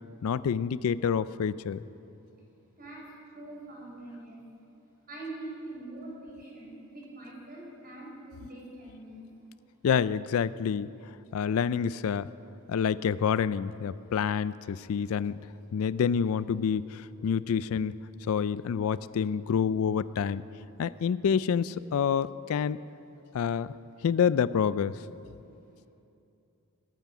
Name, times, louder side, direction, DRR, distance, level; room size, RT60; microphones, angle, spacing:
voice 1, 0.2-1.8 9.8-10.9 11.3-12.3 12.7-15.4 15.7-17.9 18.3-20.4 20.8-22.8 23.3-23.7 24.0-24.9, left 7 dB, 70° left, 17 dB, 0.3 m, -27 dB
voice 2, 2.8-4.4 5.1-9.2, right 2 dB, 40° right, -3 dB, 4.6 m, -43 dB
20.0 x 9.1 x 6.0 m, 2.7 s
head